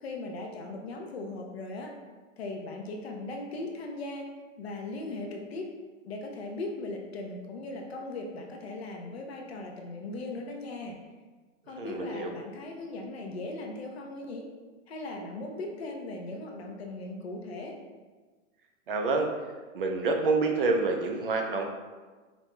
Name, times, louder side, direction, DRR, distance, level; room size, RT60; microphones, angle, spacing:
voice 1, 0.0-1.9 2.4-4.3 4.6-5.8 6.0-11.0 11.7-14.5 14.9-17.8, left 2 dB, 50° left, 1 dB, 0.6 m, -38 dB
voice 2, 11.8-12.3 18.9-19.3 19.7-21.6, right 3 dB, 45° right, 3 dB, 0.4 m, -27 dB
5.2 x 2.2 x 3.0 m, 1.3 s
hypercardioid pair, 175°, 40 cm